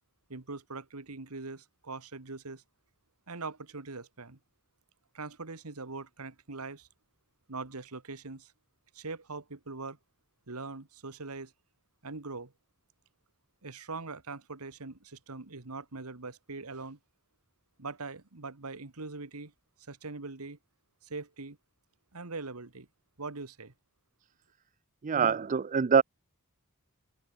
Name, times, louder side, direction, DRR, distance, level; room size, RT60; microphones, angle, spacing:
voice 1, 0.3-2.6 3.3-4.4 5.1-6.9 7.5-8.5 8.9-10.0 10.5-11.5 12.0-12.5 13.6-17.0 17.8-19.5 19.9-20.6 21.0-21.6 22.1-22.9 23.2-23.7, right 3 dB, 80° right, 1.7 m, -42 dB
voice 2, 25.0-26.0, right 6 dB, 35° right, 0.4 m, -24 dB
open air
head